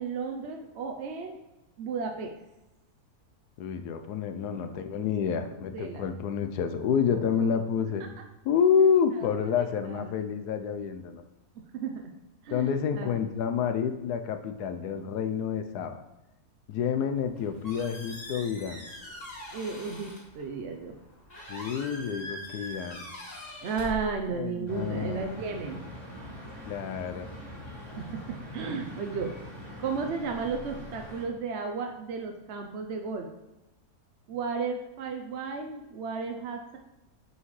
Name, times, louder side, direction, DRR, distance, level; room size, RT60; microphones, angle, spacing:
voice 1, 0.0-1.4 1.8-2.4 4.4-5.1 5.4-6.1 7.1-7.5 9.2-9.6 9.9-10.1 11.7-12.0 12.4-13.1 19.5-20.9 23.6-25.8 28.0-29.3 29.8-33.3 34.3-36.8, right 5 dB, 60° right, 3 dB, 0.7 m, -34 dB
voice 2, 3.6-8.0 8.4-11.2 12.5-16.0 16.7-18.8 21.5-23.0 24.3-25.4 26.6-27.3, left 7 dB, 85° left, 8 dB, 1.2 m, -28 dB
Squeak, 17.1-24.6, left 1 dB, 35° left, 3.2 m, -43 dB
sound 1, 24.7-31.2, left 1 dB, 15° left, 1.9 m, -43 dB
9.3 x 5.6 x 3.1 m, 1.0 s
omnidirectional pair, 1.7 m